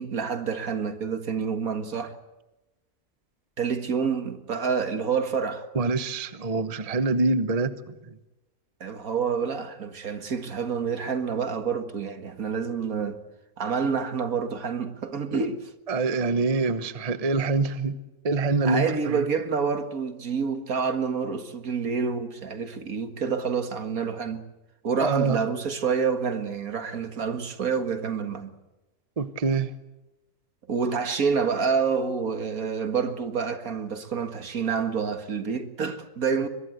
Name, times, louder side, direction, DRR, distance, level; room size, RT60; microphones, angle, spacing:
voice 1, 0.0-2.1 3.6-5.7 6.5-6.7 8.8-13.2 13.6-15.7 18.6-24.4 24.8-28.5 30.7-36.5, right 6 dB, 70° right, 2.2 m, -28 dB
voice 2, 5.7-7.7 8.1-8.2 15.9-19.3 25.0-25.4 29.2-29.7, right 3 dB, 30° right, 0.9 m, -25 dB
23.5 x 21.5 x 7.9 m
omnidirectional pair, 1.5 m